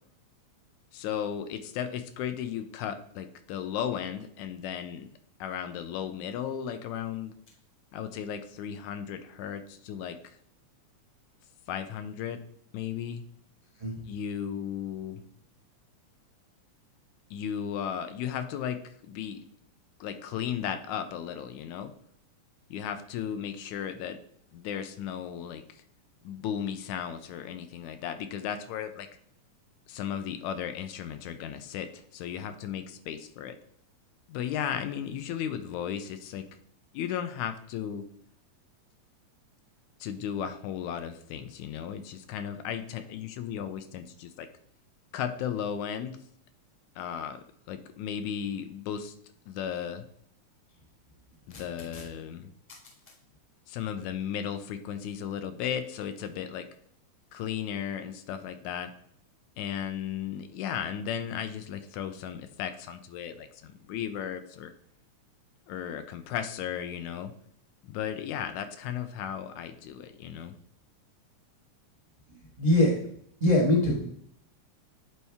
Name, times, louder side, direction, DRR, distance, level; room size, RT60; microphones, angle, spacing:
voice 1, 0.9-5.1 5.4-7.3 7.9-10.4 11.7-12.4 12.7-13.2 14.0-15.2 17.3-19.4 20.0-21.9 22.7-24.2 24.5-25.8 26.2-29.1 29.9-33.6 34.3-36.5 36.9-38.1 40.0-44.5 45.1-46.2 47.0-49.1 49.5-50.1 51.5-52.5 53.7-56.7 57.3-58.9 59.6-64.7 65.7-67.3 67.8-70.6, left 9 dB, 80° left, 10 dB, 1.9 m, -35 dB
voice 2, 72.6-73.1 73.4-74.1, left 1 dB, 40° right, -2 dB, 0.5 m, -23 dB
9.0 x 4.2 x 3.5 m, 0.66 s
omnidirectional pair, 3.5 m